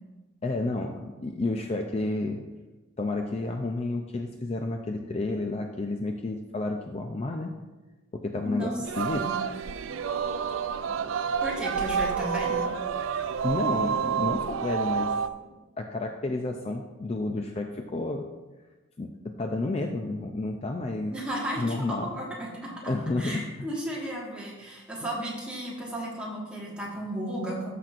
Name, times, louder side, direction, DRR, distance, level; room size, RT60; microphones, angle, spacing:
voice 1, 0.4-2.4 3.0-7.5 8.2-9.2 13.4-15.1 15.8-18.2 19.0-19.1 19.4-21.1 21.6-22.1 22.9-23.5, left 2 dB, 30° left, 4 dB, 0.4 m, -30 dB
voice 2, 8.4-9.3 10.9-11.0 11.4-12.7 21.1-27.7, right 1 dB, 5° right, -4 dB, 1.5 m, -34 dB
Singing, 8.8-15.3, right 6 dB, 75° right, 0.3 m, -29 dB
13.5 x 5.9 x 2.5 m, 1.2 s
head